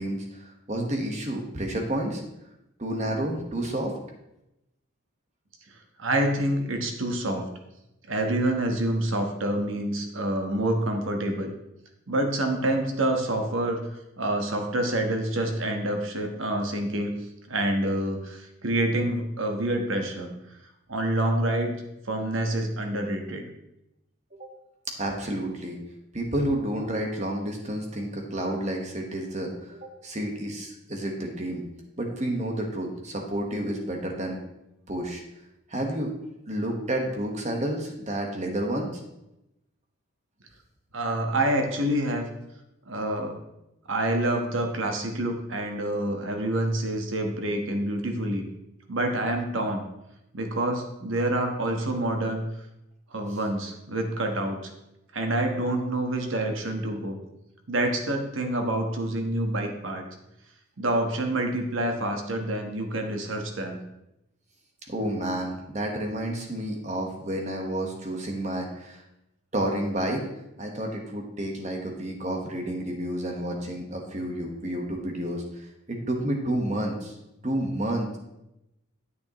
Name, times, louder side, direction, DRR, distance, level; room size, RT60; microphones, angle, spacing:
voice 1, 0.0-2.2 2.8-3.9 24.4-24.5 25.0-25.8 26.1-31.6 32.0-34.4 34.9-35.2 35.7-36.1 36.5-38.9 64.9-69.0 69.5-70.2 70.6-77.1 77.4-78.1, right 1 dB, 35° right, 2 dB, 1.4 m, -30 dB
voice 2, 6.0-7.5 8.1-11.5 12.1-13.8 14.2-17.1 17.5-20.3 20.9-21.7 22.1-23.4 40.9-42.3 42.9-43.4 43.9-48.5 48.9-49.8 50.3-52.5 53.1-54.7 55.1-57.2 57.7-60.0 60.8-63.8, right 1 dB, 70° right, 3 dB, 1.3 m, -27 dB
9.6 x 8.2 x 3.1 m, 0.88 s
head